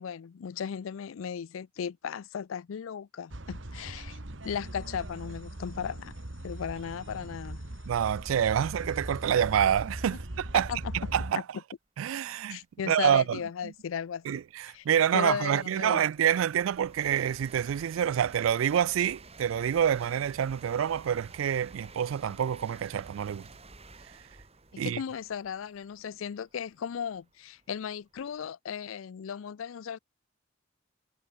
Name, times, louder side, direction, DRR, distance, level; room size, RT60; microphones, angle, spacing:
voice 1, 0.0-6.1 6.4-7.6 8.6-8.7 10.5-10.9 12.5-14.4 14.7-14.8 15.1-16.0 24.7-30.0, left 7 dB, 85° left, 0.4 m, -36 dB
sound 1, 3.3-11.3, right 1 dB, 65° right, 2.1 m, -40 dB
sound 2, 4.4-10.6, left 11 dB, 45° left, 5.3 m, -64 dB
voice 2, 7.9-10.7 10.9-11.4 12.0-12.6 12.9-13.7 14.3-23.5 24.8-25.0, right 9 dB, 85° right, 0.3 m, -27 dB
sound 3, 13.0-13.1 13.7-28.5, right 3 dB, 30° right, 3.7 m, -52 dB
head